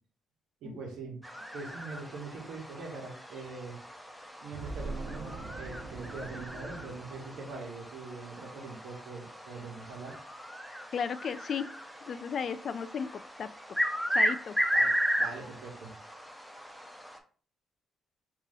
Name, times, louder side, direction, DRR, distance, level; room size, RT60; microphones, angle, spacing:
voice 1, 0.6-1.2 1.5-3.8 4.4-10.1 14.7-14.9 15.2-15.9, right 4 dB, 80° right, 0 dB, 1.3 m, -42 dB
sound 1, 1.2-17.2, equal, ahead, 0.7 m, -35 dB
sound 2, 4.5-8.0, right 3 dB, 50° right, 0.7 m, -42 dB
voice 2, 10.9-11.7 12.1-13.8 14.1-14.6, left 6 dB, 55° left, 13 dB, 0.3 m, -35 dB
3.1 x 2.7 x 4.0 m, 0.43 s
cardioid pair, 90°, 0 cm